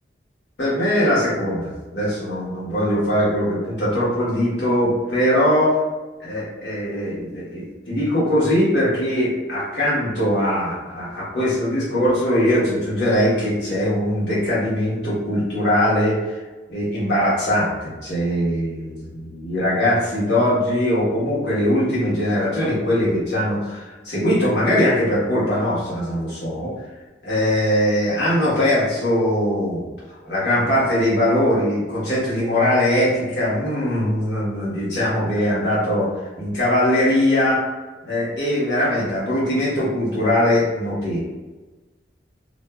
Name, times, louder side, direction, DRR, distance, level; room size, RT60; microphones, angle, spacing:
voice 1, 0.6-5.8 6.2-16.4 16.7-26.7 27.2-29.8 30.3-36.1 36.4-37.6 38.0-41.2, left 1 dB, 85° left, -9 dB, 1.3 m, -21 dB
2.7 x 2.5 x 2.2 m, 1.2 s
head